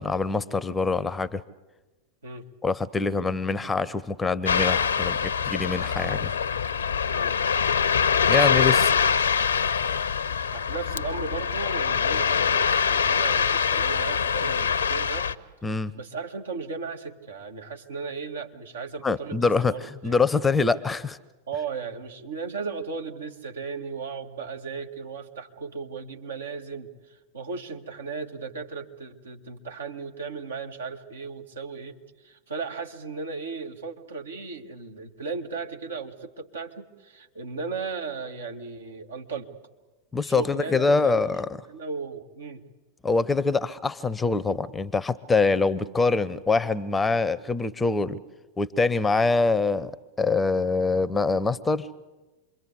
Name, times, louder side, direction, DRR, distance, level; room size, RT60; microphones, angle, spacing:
voice 1, 0.0-1.4 2.6-6.3 8.3-9.1 15.6-15.9 19.0-21.2 40.1-41.6 43.0-48.2 48.6-49.9 50.2-51.9, left 4 dB, 10° left, 18 dB, 0.8 m, -24 dB
Ocean, 4.5-15.3, left 6 dB, 70° left, 0.8 m, -24 dB
voice 2, 10.5-15.3 15.9-20.2 21.5-39.5 40.2-41.3 41.7-42.6, right 4 dB, 70° right, 3 dB, 2.0 m, -36 dB
27.5 x 22.5 x 8.2 m, 1.2 s
figure-of-eight pair, 90°, 0 cm